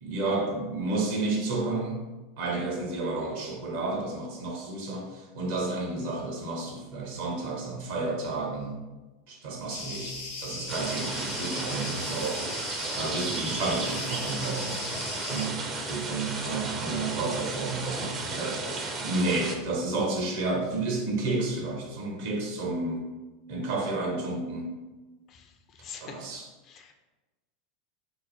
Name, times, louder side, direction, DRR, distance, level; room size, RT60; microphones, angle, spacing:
voice 1, 0.0-2.0 2.4-8.8 9.3-12.4 12.9-14.8 15.3-18.6 19.0-23.1 23.5-24.8 26.0-26.4, right 2 dB, 65° right, 0 dB, 0.9 m, -31 dB
sound 1, 9.7-15.5, left 3 dB, 75° left, 0.8 m, -38 dB
sound 2, 10.7-19.6, right 3 dB, 35° right, 0.5 m, -34 dB
voice 2, 25.3-26.9, left 6 dB, 45° left, 5 dB, 0.4 m, -46 dB
2.9 x 2.1 x 4.1 m, 1.2 s
hypercardioid pair, 90°, 0 cm